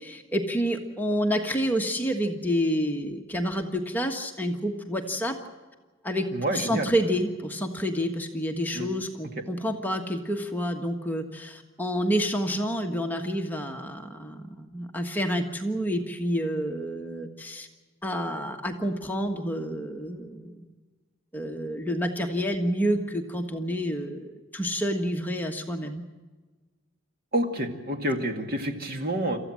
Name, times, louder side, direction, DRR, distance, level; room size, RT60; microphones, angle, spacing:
voice 1, 0.0-5.4 6.0-17.7 18.0-20.6 21.3-26.0, equal, 10° left, 3 dB, 1.5 m, -29 dB
voice 2, 6.3-6.9 8.7-8.9 27.3-29.4, right 1 dB, 50° right, 5 dB, 2.2 m, -28 dB
27.5 x 14.5 x 7.6 m, 1.3 s
head